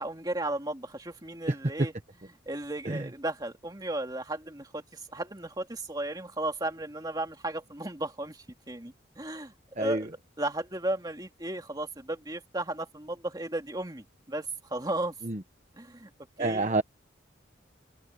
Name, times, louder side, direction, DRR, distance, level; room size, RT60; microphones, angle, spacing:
voice 1, 0.0-1.9 2.5-10.1 10.4-15.1 15.8-16.1 16.4-16.7, right 1 dB, 20° right, 2.5 m, -35 dB
voice 2, 16.4-16.8, right 2 dB, 35° right, 1.0 m, -28 dB
head